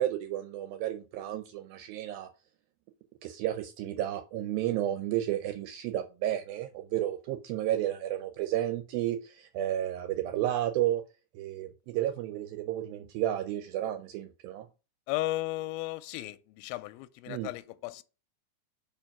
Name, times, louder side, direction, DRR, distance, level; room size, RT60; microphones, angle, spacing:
voice 1, 0.0-2.3 3.2-11.0 11.4-14.7 17.3-17.5, right 12 dB, 80° right, 2.2 m, -32 dB
voice 2, 15.1-18.0, left 17 dB, 80° left, 2.2 m, -35 dB
5.2 x 4.8 x 5.8 m
omnidirectional pair, 4.5 m